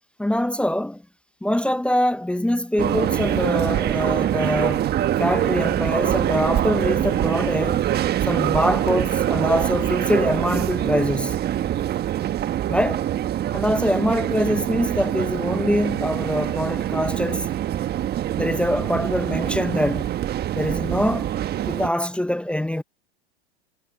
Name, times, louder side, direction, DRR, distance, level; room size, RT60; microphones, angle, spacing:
voice 1, 0.2-1.0 1.4-4.9 5.2-7.8 8.2-11.4 12.7-13.0 13.5-17.5 18.4-20.1 20.6-21.3 21.7-22.8, left 1 dB, 5° left, 0.8 m, -24 dB
sound 1, 2.8-21.9, right 12 dB, 30° right, 1.3 m, -24 dB
hypercardioid pair, 110°, 31 cm